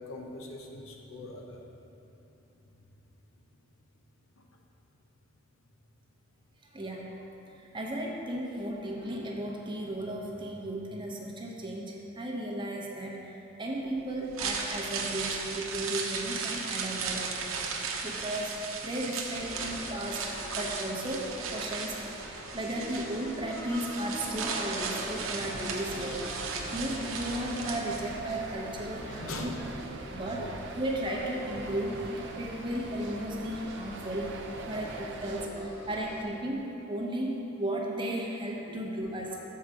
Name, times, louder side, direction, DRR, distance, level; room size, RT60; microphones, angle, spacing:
voice 1, 0.1-1.6 25.9-26.2 29.0-29.6 30.3-30.6 34.7-35.2 35.5-35.9 39.0-39.1, left 2 dB, 85° left, 1 dB, 0.9 m, -43 dB
voice 2, 6.7-17.7 18.0-26.3 26.7-29.5 30.1-34.3 34.7-39.4, right 1 dB, 25° right, -1 dB, 0.9 m, -35 dB
sound 1, 14.2-28.4 28.7-28.8, right 5 dB, 90° right, 0.8 m, -36 dB
sound 2, 19.3-36.2, equal, 20° left, 1.5 m, -44 dB
sound 3, 25.1-35.5, right 4 dB, 60° right, 0.5 m, -44 dB
7.1 x 4.8 x 6.3 m, 2.9 s
head